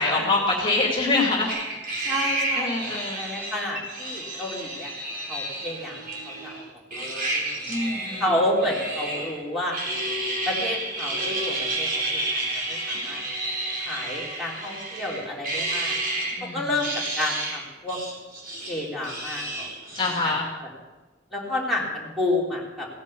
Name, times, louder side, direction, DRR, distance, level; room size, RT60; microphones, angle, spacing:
voice 1, 0.0-1.8 2.1-3.2 7.7-8.2 16.4-16.7 19.9-20.4, left 2 dB, 25° left, -1 dB, 2.6 m, -25 dB
sound 1, 1.5-6.6 6.9-9.4 9.7-16.4 16.7-17.6 17.9-20.3, right 2 dB, 50° right, 4.2 m, -30 dB
voice 2, 2.1-4.9 5.3-6.0 6.3-6.6 7.0-7.1 7.3-7.5 8.2-9.8 10.5-13.2 13.8-16.0 16.4-16.9 17.2-18.0 18.7-19.7 20.2-20.3 21.3-22.9, left 1 dB, ahead, -3 dB, 3.5 m, -30 dB
17.0 x 10.5 x 7.0 m, 1.2 s
head